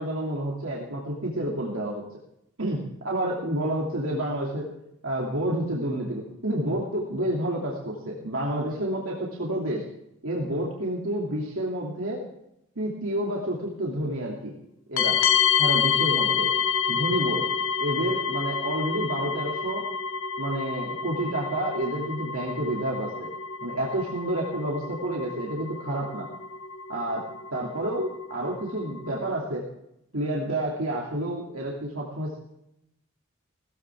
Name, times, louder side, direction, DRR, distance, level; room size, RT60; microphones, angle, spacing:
voice 1, 0.0-2.0 2.6-4.7 5.0-9.8 10.2-12.2 12.8-14.5 14.9-15.2 15.6-16.5 16.9-17.5 17.8-19.8 20.4-23.3 23.6-26.3 26.9-27.2 27.5-29.6 30.1-32.4, right 1 dB, 85° right, -3 dB, 2.7 m, -29 dB
sound 1, 15.0-29.3, left 7 dB, 75° left, 0.8 m, -28 dB
17.5 x 14.5 x 3.6 m, 0.80 s
head